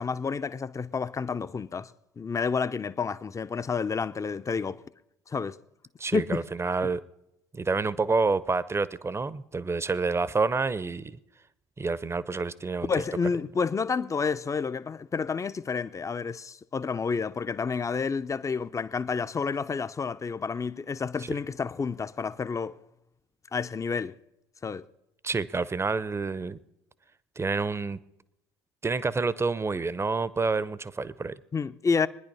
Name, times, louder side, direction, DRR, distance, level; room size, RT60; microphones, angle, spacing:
voice 1, 0.0-1.9 2.2-4.8 5.3-5.6 6.1-6.4 12.9-22.8 23.5-24.1 24.6-24.8 31.5-32.1, left 5 dB, 25° left, 0.7 m, -30 dB
voice 2, 6.0-7.0 7.5-11.2 11.8-12.9 25.2-26.6 27.4-28.0 28.8-31.4, right 4 dB, 20° right, 0.8 m, -28 dB
23.0 x 10.0 x 5.5 m
hypercardioid pair, 60°, 13 cm